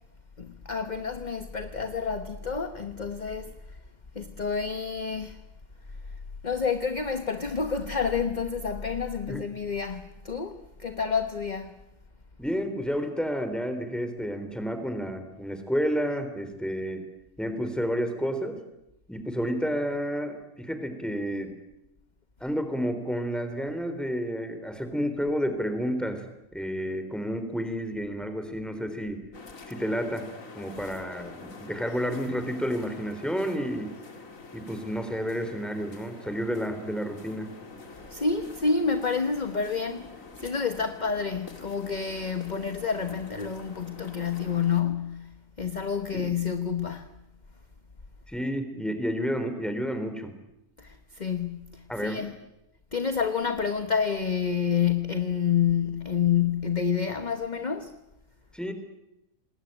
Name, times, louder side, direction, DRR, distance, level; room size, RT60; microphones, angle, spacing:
voice 1, 0.4-3.6 4.1-5.4 6.4-11.7 38.1-47.1 50.8-52.3 52.9-57.9, left 6 dB, 35° left, 1.3 m, -29 dB
voice 2, 12.4-17.0 17.4-18.6 19.1-21.5 22.4-26.2 26.5-29.2 29.7-30.3 30.5-33.9 34.5-37.5 46.1-46.3 48.3-50.3 51.9-52.3 58.5-58.7, equal, ahead, 3.6 m, -30 dB
sound 1, 29.3-44.8, left 4 dB, 80° left, 2.8 m, -46 dB
27.0 x 20.5 x 9.1 m
omnidirectional pair, 1.4 m